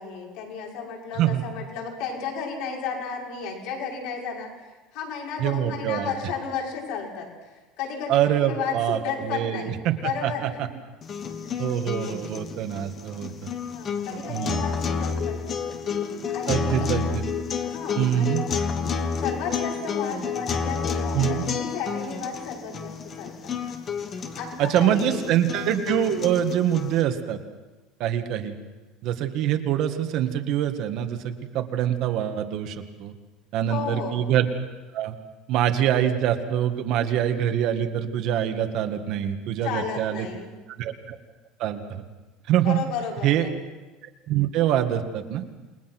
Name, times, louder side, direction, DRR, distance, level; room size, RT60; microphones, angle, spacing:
voice 1, 0.0-4.5 4.9-10.7 12.2-12.3 13.7-15.6 16.3-16.9 17.6-18.4 18.7-23.5 24.3-25.3 33.7-34.2 39.6-40.5 42.6-43.5, left 6 dB, 65° left, -2 dB, 6.0 m, -33 dB
voice 2, 5.4-6.1 8.1-9.9 10.2-10.5 11.6-13.5 14.3-14.6 16.5-17.2 18.0-18.4 21.1-21.4 24.6-27.4 28.0-28.5 29.0-33.1 33.5-34.5 34.9-35.1 35.5-40.3 40.8-41.2 41.6-42.0 42.5-42.8 43.2-43.5 44.3-45.4, right 10 dB, 50° right, 7 dB, 1.8 m, -24 dB
sound 1, 11.0-27.0, left 6 dB, 25° left, 1.3 m, -30 dB
29.0 x 21.0 x 6.1 m, 1.2 s
cardioid pair, 170°, 0 cm